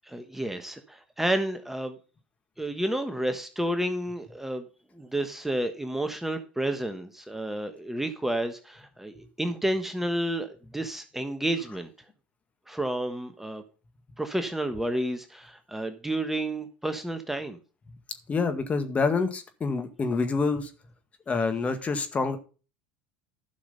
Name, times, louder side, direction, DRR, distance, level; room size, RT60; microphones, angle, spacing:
voice 1, 0.0-2.0 2.6-4.7 4.9-11.9 12.7-13.6 14.2-17.6, right 1 dB, 5° right, 8 dB, 1.2 m, -30 dB
voice 2, 18.3-20.7 21.3-22.4, left 4 dB, 25° left, 8 dB, 1.9 m, -27 dB
12.0 x 6.2 x 5.5 m, 0.36 s
hypercardioid pair, 80°, 5 cm